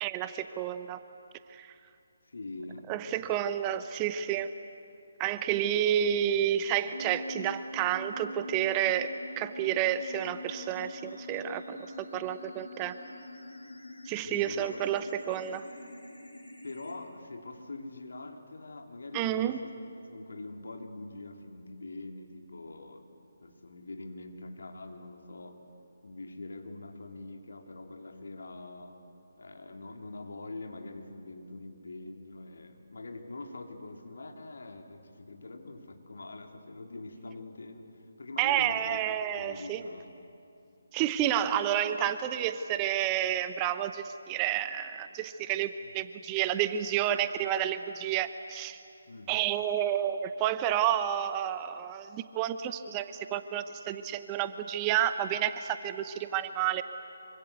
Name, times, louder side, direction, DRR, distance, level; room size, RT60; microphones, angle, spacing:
voice 1, 0.0-1.0 1.5-1.7 2.9-4.5 5.2-12.9 14.0-15.6 19.1-19.6 38.4-39.8 40.9-48.8 49.3-56.8, right 11 dB, 20° right, 11 dB, 0.8 m, -30 dB
voice 2, 2.2-2.8 3.2-3.3 10.2-10.3 14.2-14.9 16.6-19.7 20.0-23.0 23.4-25.6 26.0-29.0 29.4-39.0 39.4-40.1 41.2-41.3 45.8-45.9 49.1-49.5, left 2 dB, 65° left, 3 dB, 3.0 m, -44 dB
sound 1, 6.9-16.9, left 1 dB, 80° left, 5.5 m, -44 dB
25.5 x 24.5 x 8.1 m, 2.6 s
figure-of-eight pair, 145°, 0 cm